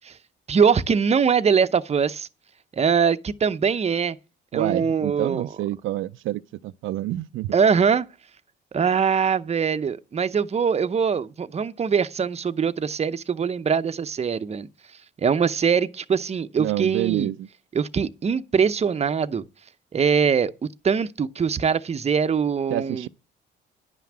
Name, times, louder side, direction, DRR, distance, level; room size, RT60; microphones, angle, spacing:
voice 1, 0.5-2.3 2.7-4.2 4.5-5.5 7.5-8.1 8.7-14.7 15.2-17.3 17.7-19.4 19.9-20.5 20.8-23.1, right 6 dB, 30° right, 0.7 m, -22 dB
voice 2, 4.5-7.5 16.6-17.5 22.7-23.1, right 15 dB, 80° right, 0.5 m, -28 dB
10.5 x 5.8 x 7.4 m
cardioid pair, 90°, 20 cm